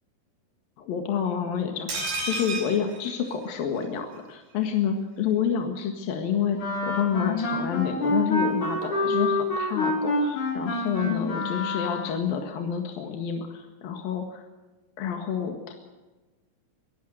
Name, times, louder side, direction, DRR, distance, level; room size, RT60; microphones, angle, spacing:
voice 1, 0.8-14.4 15.0-15.7, left 7 dB, 75° left, 4 dB, 3.6 m, -29 dB
sound 1, 1.9-3.8 4.2-4.3 4.5-4.6, right 2 dB, 80° right, 7.8 m, -32 dB
Wind instrument woodwind instrument, 6.6-12.2, left 2 dB, 60° left, 6.5 m, -27 dB
24.0 x 17.0 x 6.5 m, 1.2 s
omnidirectional pair, 4.1 m